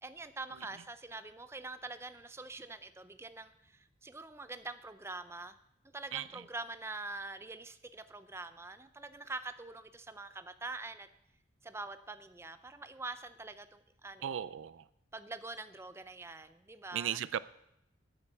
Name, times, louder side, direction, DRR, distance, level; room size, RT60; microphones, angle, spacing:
voice 1, 0.0-5.6 5.8-11.1 11.6-14.4 15.1-17.2, right 3 dB, 15° right, 11 dB, 0.5 m, -45 dB
voice 2, 6.1-6.4 14.2-14.9 16.9-17.4, right 9 dB, 75° right, 17 dB, 0.4 m, -37 dB
10.5 x 8.8 x 6.6 m, 0.80 s
head